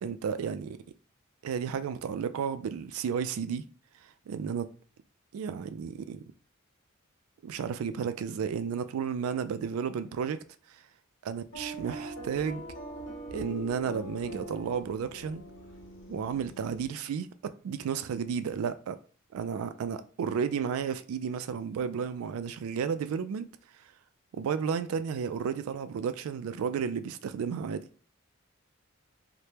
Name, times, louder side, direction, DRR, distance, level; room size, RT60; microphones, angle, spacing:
voice 1, 0.0-0.8 1.4-3.6 4.3-4.7 5.3-6.2 7.4-10.4 11.2-12.6 13.3-15.4 16.1-19.0 19.3-23.5 24.3-27.9, right 7 dB, 85° right, 0.3 m, -32 dB
sound 1, 11.5-16.9, right 1 dB, 60° left, 0.8 m, -42 dB
2.9 x 2.1 x 3.3 m
head